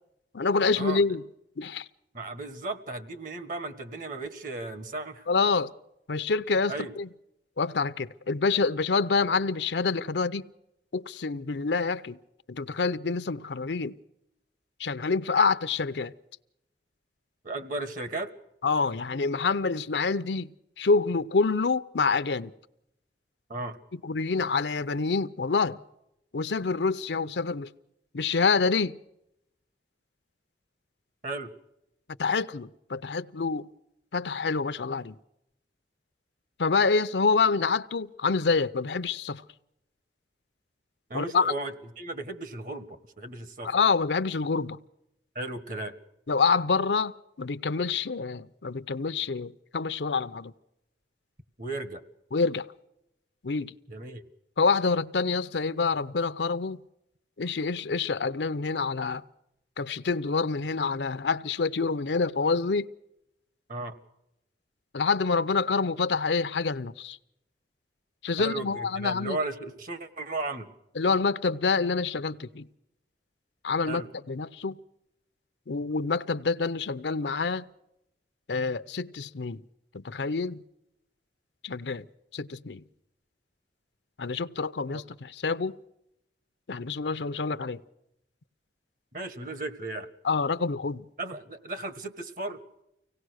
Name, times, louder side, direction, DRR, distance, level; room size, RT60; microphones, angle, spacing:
voice 1, 0.3-1.2 1.6-1.9 5.3-5.7 6.1-7.1 7.6-10.4 10.9-12.2 12.5-14.0 14.8-16.1 18.6-20.5 20.8-22.5 24.0-25.8 26.3-27.7 28.1-28.9 32.2-33.7 34.1-35.2 36.6-39.4 41.1-41.5 43.6-44.8 46.3-47.1 47.4-50.5 52.3-52.7 53.4-53.7 54.6-56.8 57.4-59.2 59.8-62.9 64.9-67.2 68.2-69.4 71.0-72.7 73.6-74.0 74.3-74.7 75.7-77.7 78.5-79.6 79.9-80.6 81.6-82.0 82.3-82.8 84.2-85.8 86.7-87.8 90.2-91.0, left 4 dB, 80° left, 0.7 m, -27 dB
voice 2, 2.1-5.3 6.7-6.9 17.4-18.3 23.5-23.8 31.2-31.5 41.1-43.7 45.3-45.9 51.6-52.0 53.9-54.2 63.7-64.0 68.4-70.7 73.9-74.1 84.9-85.0 89.1-90.1 91.2-92.6, right 2 dB, 50° right, 1.6 m, -35 dB
25.0 x 17.5 x 6.4 m
head